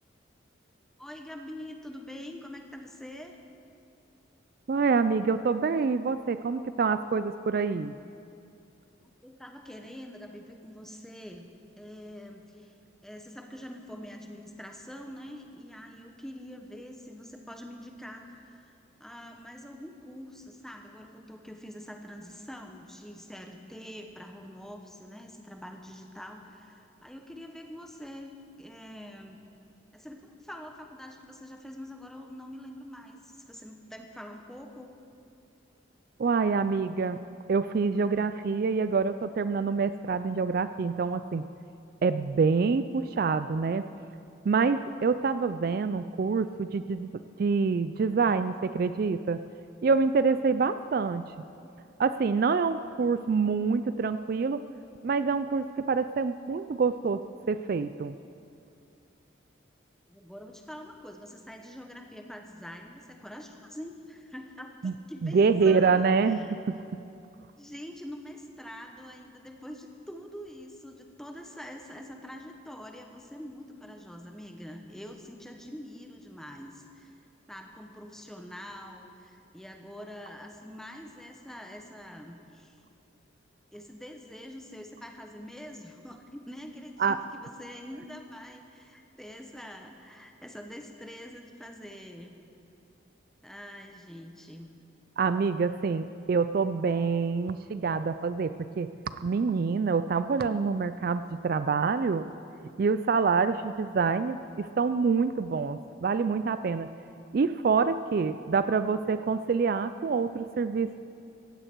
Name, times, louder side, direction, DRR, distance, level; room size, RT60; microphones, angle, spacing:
voice 1, 1.0-3.4 9.0-11.5 11.8-12.7 13.0-18.7 19.0-29.4 29.9-35.0 60.1-66.5 67.6-77.2 77.5-82.8 83.7-92.4 93.4-94.7, equal, ahead, 3 dB, 1.0 m, -45 dB
voice 2, 4.7-7.9 36.2-37.2 37.5-41.4 42.0-43.8 44.4-47.1 47.4-49.4 49.8-51.3 52.0-54.6 55.0-57.2 57.5-58.1 64.8-64.9 65.2-66.7 87.0-87.2 95.2-98.9 99.2-102.2 102.8-106.9 107.3-111.0, right 5 dB, 50° right, 12 dB, 0.3 m, -26 dB
16.0 x 16.0 x 4.6 m, 2.6 s
head